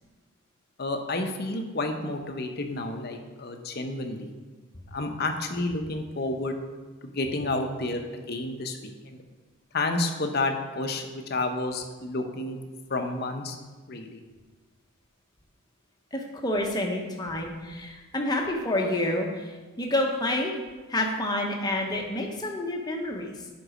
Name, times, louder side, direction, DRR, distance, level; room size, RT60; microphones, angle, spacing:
voice 1, 0.8-4.3 4.9-6.6 7.0-9.2 9.7-12.6 12.9-13.6 13.9-14.2, left 2 dB, 50° left, 5 dB, 0.8 m, -30 dB
voice 2, 16.1-20.5 20.9-23.4, left 1 dB, 20° left, 0 dB, 1.0 m, -28 dB
8.0 x 5.4 x 4.9 m, 1.3 s
head